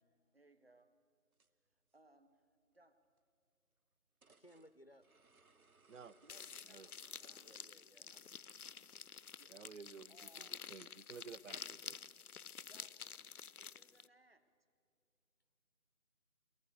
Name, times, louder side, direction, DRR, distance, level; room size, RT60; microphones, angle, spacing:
voice 1, 0.3-0.9 1.7-2.4 2.7-3.0 6.2-7.5 8.0-8.2 9.4-9.6 10.1-10.7 12.6-13.2 13.6-14.5, right 2 dB, 45° right, 10 dB, 1.3 m, -68 dB
sound 1, 1.3-1.5 1.9-2.0 3.2-3.3 4.2-7.9 8.3-8.4 8.8-8.9, right 3 dB, 80° right, 1.2 m, -69 dB
voice 2, 4.3-5.1 6.0-6.5 7.4-8.3 8.7-9.0, equal, 45° left, 11 dB, 0.5 m, -64 dB
sound 2, 6.3-14.1, left 7 dB, 90° left, 0.6 m, -50 dB
voice 3, 9.5-12.0, right 5 dB, 60° right, 19 dB, 0.6 m, -54 dB
23.5 x 18.5 x 6.7 m, 2.4 s
figure-of-eight pair, 175°, 42 cm